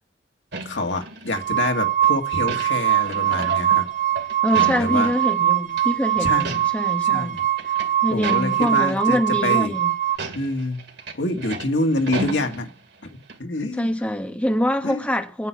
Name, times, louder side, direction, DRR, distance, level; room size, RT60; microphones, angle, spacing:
sound 1, 0.5-1.7 2.0-5.4 5.7-5.9 6.2-6.9 7.2-8.9 9.4-9.5 10.1-13.0 13.3-13.4, right 2 dB, 65° right, 2.2 m, -34 dB
voice 1, 0.7-3.9 4.5-5.1 6.2-6.6 7.1-7.4 8.1-9.7 10.3-10.8 11.1-12.7 13.0-13.1 13.4-13.9 14.8-15.0, left 2 dB, 85° left, 1.9 m, -26 dB
sound 2, 1.3-10.2, right 12 dB, 45° right, 0.6 m, -22 dB
voice 2, 4.4-7.4 8.0-9.9 13.8-15.5, equal, 10° left, 1.1 m, -24 dB
9.4 x 9.1 x 8.4 m
head